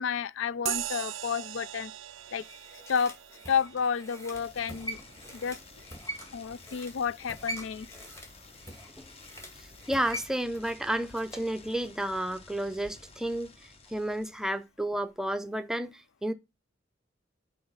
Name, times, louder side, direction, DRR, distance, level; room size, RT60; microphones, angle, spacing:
voice 1, 0.0-1.9 2.3-2.4 2.9-3.1 3.5-5.0 5.3-5.6 6.3-7.9, left 6 dB, 80° left, 0.4 m, -30 dB
sound 1, 0.7-8.6, right 13 dB, 75° right, 0.4 m, -42 dB
sound 2, 2.1-11.5 11.8-11.9, equal, 15° left, 1.8 m, -44 dB
sound 3, 4.3-14.6, left 2 dB, 30° left, 0.9 m, -53 dB
voice 2, 9.9-13.5 13.9-16.3, right 1 dB, 5° right, 0.5 m, -31 dB
6.0 x 4.8 x 5.4 m
head